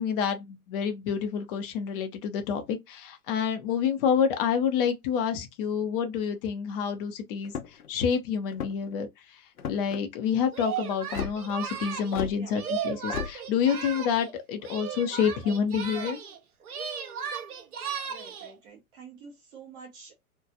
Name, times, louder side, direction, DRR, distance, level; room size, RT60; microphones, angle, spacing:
voice 1, 0.0-7.5 7.9-9.1 9.7-16.2, left 7 dB, 40° left, 0.6 m, -28 dB
sound 1, 7.4-7.9 8.5-9.0 9.6-10.0 11.1-11.3 12.1-12.4 13.1-13.3, left 7 dB, 80° left, 0.6 m, -33 dB
Singing, 10.5-14.3 14.6-16.4 16.6-18.5, right 7 dB, 75° right, 0.7 m, -36 dB
voice 2, 18.1-20.1, right 5 dB, 10° right, 0.3 m, -47 dB
2.3 x 2.2 x 2.6 m
figure-of-eight pair, 100°, 45 cm